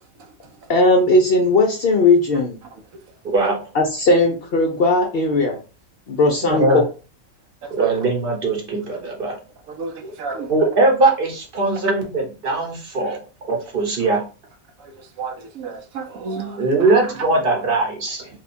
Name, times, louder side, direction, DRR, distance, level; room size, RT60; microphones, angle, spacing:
voice 1, 0.7-2.6 3.7-5.6 6.1-6.8, left 2 dB, 55° left, 0.7 m, -17 dB
voice 2, 6.4-6.8 7.7-9.4 10.4-13.2 13.5-14.2 16.6-18.3, right 2 dB, 45° right, 1.0 m, -20 dB
voice 3, 7.6-7.9 9.7-10.7 15.2-16.6, right 5 dB, 80° right, 1.0 m, -31 dB
2.8 x 2.3 x 4.1 m
omnidirectional pair, 1.4 m